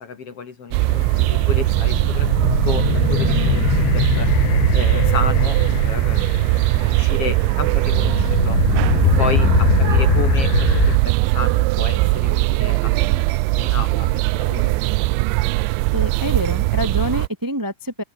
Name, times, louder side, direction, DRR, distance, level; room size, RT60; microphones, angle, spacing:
voice 1, 0.0-4.3 4.7-8.6 9.2-13.3 13.5-14.7, left 5 dB, 45° left, 2.4 m, -31 dB
sound 1, 0.7-17.3, right 22 dB, 85° right, 3.0 m, -19 dB
sound 2, 0.9-11.0, left 16 dB, 80° left, 3.1 m, -23 dB
voice 2, 15.9-18.0, equal, 25° right, 0.4 m, -26 dB
open air
omnidirectional pair, 5.2 m